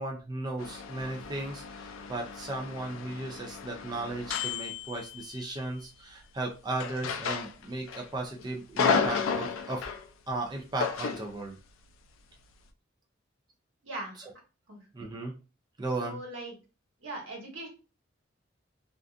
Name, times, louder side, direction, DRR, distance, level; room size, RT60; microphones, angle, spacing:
voice 1, 0.0-9.9 10.3-11.6 14.9-15.3 15.8-16.2, right 2 dB, 20° right, 1 dB, 0.4 m, -36 dB
sound 1, 0.6-5.6 6.8-8.0 8.4-10.1 10.8-11.3, left 6 dB, 85° left, 0.3 m, -33 dB
voice 2, 13.8-14.3 14.7-14.9 16.0-16.6 17.0-17.7, right 1 dB, 80° right, -1 dB, 1.0 m, -40 dB
2.5 x 2.4 x 2.4 m, 0.32 s
head